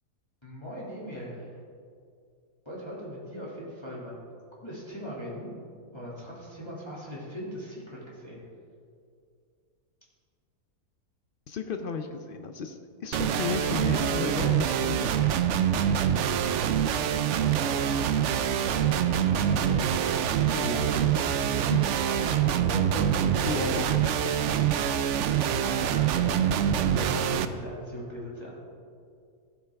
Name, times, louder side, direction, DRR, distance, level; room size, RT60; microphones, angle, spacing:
voice 1, 0.4-1.6 2.7-4.2 4.6-5.6 5.9-8.4 14.4-14.5 15.8-16.1 16.3-21.8 22.1-23.5 25.4-28.5, equal, 15° left, -6 dB, 2.1 m, -39 dB
voice 2, 11.5-15.4 21.7-22.1 23.4-25.0, left 5 dB, 70° left, 6 dB, 0.5 m, -34 dB
sound 1, 13.1-27.5, right 9 dB, 70° right, 0.7 m, -25 dB
15.0 x 8.7 x 3.4 m, 2.3 s
omnidirectional pair, 1.7 m